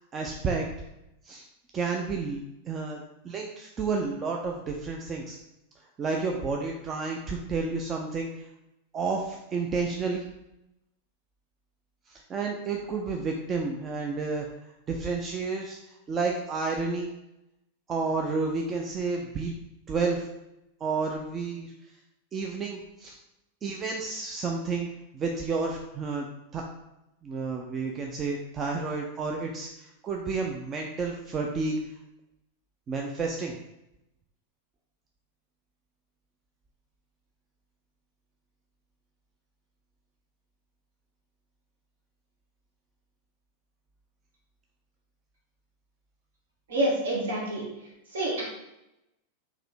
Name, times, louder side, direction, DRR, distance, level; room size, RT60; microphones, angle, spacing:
voice 1, 0.1-0.7 1.2-1.4 1.7-5.4 6.0-8.4 8.9-10.2 12.1-14.5 14.9-17.1 17.9-19.5 19.9-20.3 20.8-21.7 22.3-23.2 23.6-24.9 25.1-26.3 26.5-26.6 27.2-31.8 32.9-33.5, right 4 dB, 25° right, 1 dB, 0.4 m, -31 dB
voice 2, 46.7-47.6 48.1-48.4, right 1 dB, 60° right, -3 dB, 1.2 m, -27 dB
3.9 x 2.7 x 4.6 m, 0.90 s
figure-of-eight pair, 90°, 0 cm